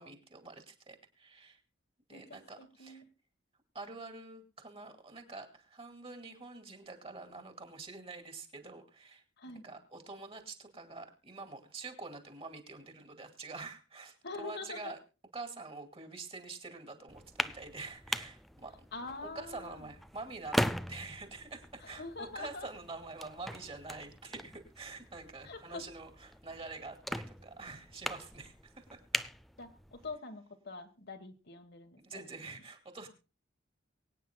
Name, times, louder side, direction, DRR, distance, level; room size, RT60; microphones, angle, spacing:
voice 1, 0.0-1.6 2.1-3.0 3.7-15.0 15.3-18.9 19.2-29.0 32.0-33.1, right 3 dB, 30° right, 6 dB, 2.5 m, -46 dB
voice 2, 2.1-3.0 9.4-9.6 14.2-14.9 18.9-19.8 21.8-22.7 25.4-25.8 29.6-32.2, left 3 dB, 55° left, 6 dB, 1.4 m, -45 dB
sound 1, 17.1-30.2, equal, ahead, 0.5 m, -40 dB
24.0 x 9.3 x 2.2 m, 0.32 s
head